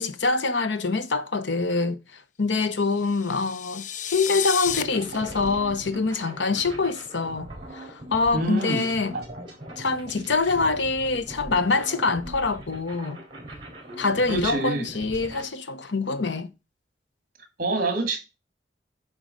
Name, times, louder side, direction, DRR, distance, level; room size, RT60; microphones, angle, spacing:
voice 1, 0.0-2.0 2.4-9.1 9.8-13.2 14.0-16.5, left 3 dB, 80° left, 0.8 m, -25 dB
sound 1, 2.9-4.8, left 9 dB, 40° left, 0.4 m, -31 dB
sound 2, 4.6-15.4, right 1 dB, 30° right, 3.9 m, -40 dB
voice 2, 8.3-8.9 9.1-9.2 14.3-14.9 17.6-18.2, right 3 dB, 50° right, 1.7 m, -26 dB
9.5 x 3.8 x 5.2 m
head